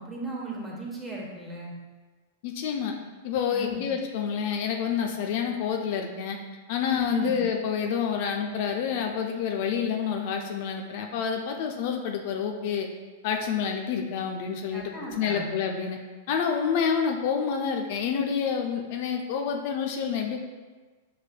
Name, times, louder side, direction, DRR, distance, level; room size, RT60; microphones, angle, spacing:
voice 1, 0.0-1.7 3.5-3.9 6.9-7.4 14.7-15.5, right 2 dB, 10° right, -3 dB, 1.1 m, -36 dB
voice 2, 2.4-2.9 3.2-6.4 6.7-12.9 13.2-16.0 16.3-20.4, left 7 dB, 55° left, 3 dB, 0.5 m, -28 dB
6.5 x 3.2 x 2.2 m, 1.3 s
hypercardioid pair, 105°, 0 cm